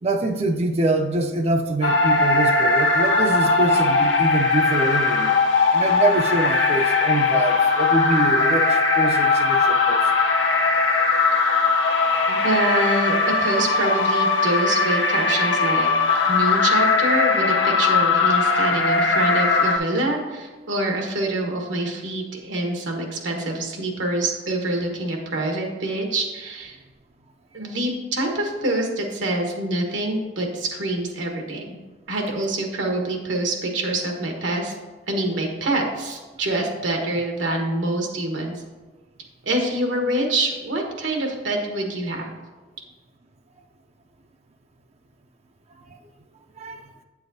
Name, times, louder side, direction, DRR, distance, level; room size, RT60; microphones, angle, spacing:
voice 1, 0.0-5.4 5.7-10.1 46.6-46.9, right 2 dB, 35° right, 5 dB, 0.4 m, -24 dB
sound 1, 1.8-19.8, left 3 dB, 85° left, 0.7 m, -19 dB
voice 2, 12.3-15.9 16.3-26.8 27.5-31.8 32.1-34.7 35.1-38.6 39.4-42.3, right 1 dB, 85° right, 2 dB, 1.2 m, -25 dB
8.4 x 7.0 x 2.7 m, 1.3 s
head